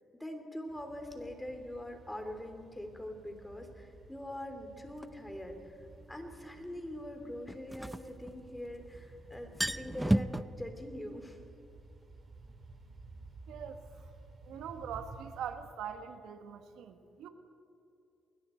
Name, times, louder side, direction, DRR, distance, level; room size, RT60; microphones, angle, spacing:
voice 1, 0.2-5.8 6.1-11.4, left 1 dB, 10° left, 5 dB, 3.4 m, -43 dB
sound 1, 0.7-15.5, right 3 dB, 40° right, 4.5 m, -54 dB
sound 2, 5.0-5.1 7.5-8.8 9.1-9.2 9.4-10.4, right 1 dB, 10° right, 0.6 m, -31 dB
voice 2, 13.5-13.9 14.4-17.3, right 8 dB, 80° right, 7 dB, 1.6 m, -42 dB
28.5 x 21.0 x 4.6 m, 2.7 s
cardioid pair, 90°, 0 cm